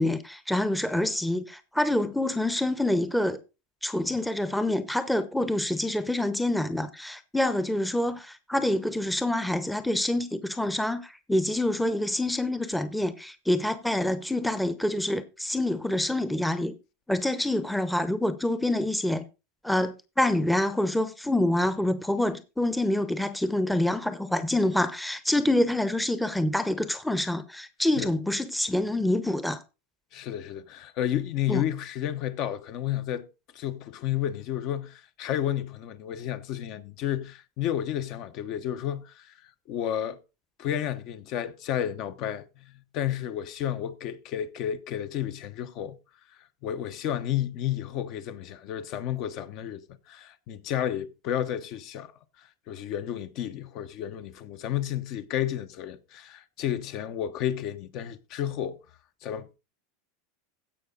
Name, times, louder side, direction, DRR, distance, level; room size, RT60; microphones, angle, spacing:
voice 1, 0.0-3.4 3.8-16.7 17.1-19.2 19.6-29.6 31.5-31.6, left 1 dB, ahead, 0.8 m, -26 dB
voice 2, 30.1-33.2 33.5-40.2 40.6-46.0 46.6-49.8 50.1-52.1 52.4-58.8 59.2-59.5, left 11 dB, 50° left, 1.1 m, -31 dB
15.5 x 5.7 x 3.9 m
supercardioid pair, 125°, 0 cm